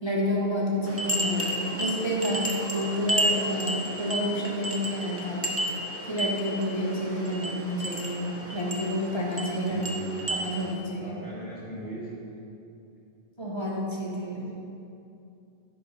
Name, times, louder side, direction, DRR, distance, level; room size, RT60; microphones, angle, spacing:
voice 1, 0.0-5.5 6.0-9.8 10.3-11.1 13.4-14.5, equal, 25° left, -5 dB, 1.2 m, -29 dB
sound 1, 0.8-10.7, right 1 dB, 15° right, 0.8 m, -32 dB
voice 2, 9.7-10.1 11.0-12.1 14.3-14.5, right 2 dB, 80° right, -8 dB, 2.5 m, -39 dB
9.3 x 5.4 x 5.0 m, 2.7 s
omnidirectional pair, 1.0 m